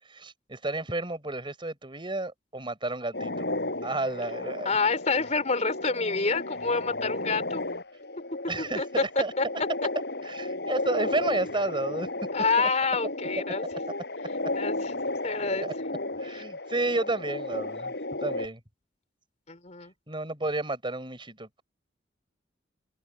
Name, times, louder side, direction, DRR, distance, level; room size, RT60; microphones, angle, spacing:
voice 1, 0.1-3.5 3.8-4.8 8.5-9.3 10.3-12.1 12.6-12.7 15.6-15.7 16.2-17.9 18.2-18.6 20.1-21.6, right 2 dB, 25° right, 5.3 m, -31 dB
sound 1, 3.1-18.5, left 2 dB, 65° left, 5.6 m, -34 dB
voice 2, 4.6-7.6 8.8-9.0 9.4-9.5 12.3-13.6 14.5-14.9 15.2-15.7 16.3-16.4 19.5-19.9, left 4 dB, 40° left, 3.8 m, -27 dB
open air
head